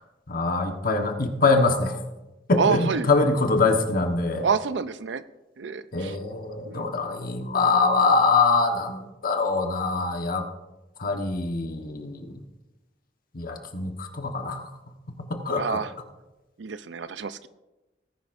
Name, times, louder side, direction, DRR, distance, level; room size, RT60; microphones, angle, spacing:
voice 1, 0.3-2.0 2.5-4.5 5.9-10.4 11.0-12.4 13.3-14.7 15.2-15.8, left 3 dB, 55° left, 5 dB, 1.3 m, -24 dB
voice 2, 2.6-3.1 4.4-5.2 5.6-6.2 6.7-6.9 15.6-15.9 16.6-17.5, right 5 dB, 75° right, 14 dB, 0.5 m, -27 dB
19.0 x 10.5 x 2.6 m, 1.0 s
head